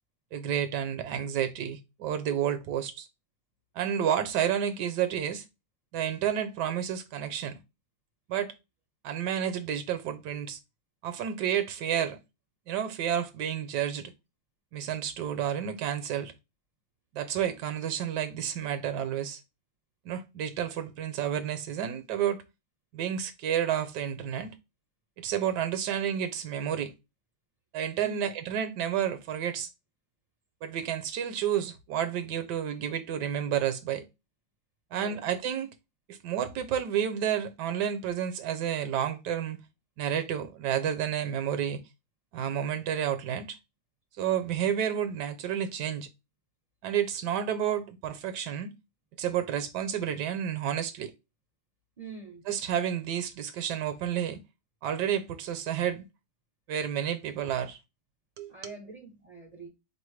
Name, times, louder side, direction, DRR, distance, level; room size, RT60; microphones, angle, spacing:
voice 1, 0.3-3.1 3.7-5.4 5.9-7.6 8.3-8.5 9.0-10.6 11.0-12.2 12.7-14.1 14.7-16.3 17.1-19.4 20.0-22.4 22.9-24.5 25.2-26.9 27.7-29.7 30.6-34.1 34.9-35.7 36.1-39.6 40.0-41.8 42.3-43.6 44.2-46.1 46.8-48.7 49.2-51.1 52.5-54.4 54.8-56.1 56.7-57.8 58.4-58.7, right 9 dB, 75° right, 1.1 m, -30 dB
voice 2, 28.0-28.3 34.9-35.2 52.0-52.4 58.5-59.7, right 4 dB, 45° right, 0.5 m, -45 dB
4.1 x 3.1 x 3.2 m
omnidirectional pair, 1.9 m